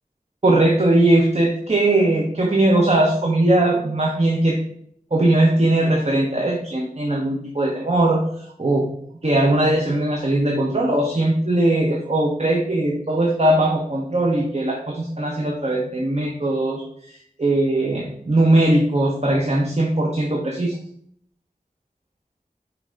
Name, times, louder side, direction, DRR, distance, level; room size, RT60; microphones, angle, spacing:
voice 1, 0.4-4.6 5.1-8.9 9.2-20.8, right 1 dB, 45° right, 0 dB, 0.9 m, -20 dB
5.9 x 3.3 x 5.1 m, 0.66 s
wide cardioid pair, 45°, 15 cm